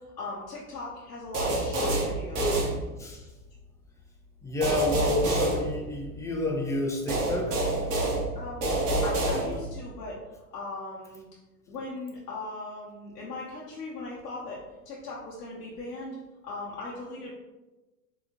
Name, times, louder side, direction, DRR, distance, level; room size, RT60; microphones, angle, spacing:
voice 1, 0.0-2.6 8.3-8.7 9.0-10.2 10.5-11.2 11.7-16.2 16.4-17.3, left 2 dB, 85° left, -5 dB, 1.0 m, -38 dB
sound 1, 1.3-3.3 4.6-6.4 7.1-9.9, right 2 dB, 70° right, 1.4 m, -28 dB
voice 2, 4.4-8.0, left 1 dB, 5° left, 0 dB, 0.6 m, -30 dB
4.6 x 3.1 x 2.8 m, 1.1 s
hypercardioid pair, 105°, 47 cm